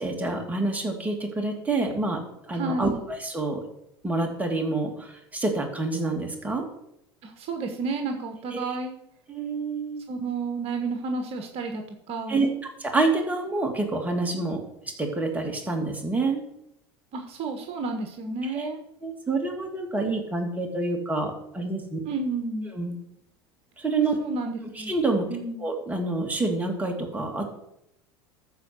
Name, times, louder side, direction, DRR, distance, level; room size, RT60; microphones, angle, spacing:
voice 1, 0.0-2.2 2.5-3.6 4.0-6.6 9.3-10.1 12.3-12.5 12.8-14.6 15.0-16.4 18.5-18.7 19.0-22.0 22.7-22.9 23.8-24.2 24.8-25.2 25.6-27.5, right 3 dB, 10° right, 1 dB, 2.5 m, -27 dB
voice 2, 2.5-3.0 7.2-9.0 10.1-12.4 17.1-18.8 22.0-22.7 24.2-24.9 25.3-25.7, right 3 dB, 50° right, 4 dB, 1.4 m, -31 dB
13.5 x 4.8 x 6.2 m, 0.80 s
hypercardioid pair, 80°, 14 cm